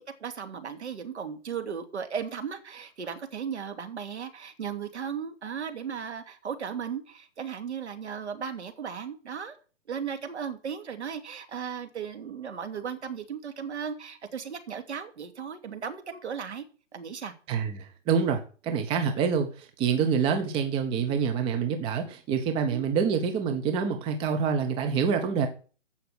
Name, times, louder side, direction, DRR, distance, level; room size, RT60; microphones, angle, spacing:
voice 1, 0.0-9.6 9.9-16.6 16.9-17.3 22.7-22.9, right 7 dB, 65° right, 2.6 m, -36 dB
voice 2, 17.5-25.5, right 6 dB, 15° right, 1.0 m, -26 dB
14.5 x 5.9 x 8.0 m
figure-of-eight pair, 140°, 37 cm